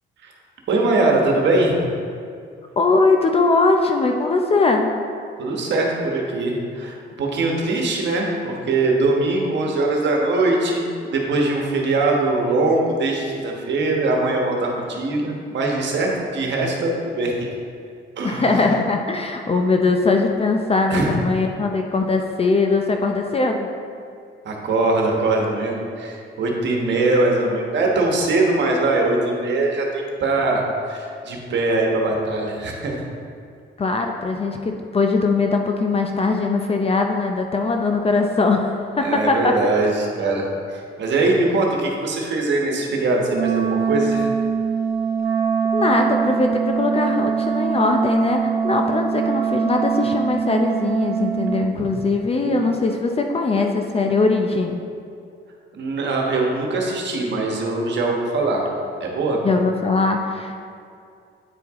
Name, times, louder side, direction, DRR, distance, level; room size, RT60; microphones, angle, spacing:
voice 1, 0.7-1.8 5.4-17.3 18.2-18.5 20.9-21.1 24.4-30.6 30.9-33.0 39.0-44.3 55.7-58.6 59.0-59.4, right 2 dB, 65° right, 0 dB, 1.3 m, -21 dB
voice 2, 2.8-4.9 18.2-23.7 33.8-39.5 45.7-54.8 59.4-60.6, left 3 dB, 30° left, 3 dB, 0.5 m, -20 dB
Wind instrument woodwind instrument, 43.3-51.7, right 6 dB, 85° right, 0.8 m, -23 dB
8.8 x 4.6 x 3.6 m, 2.4 s
cardioid pair, 90°, 20 cm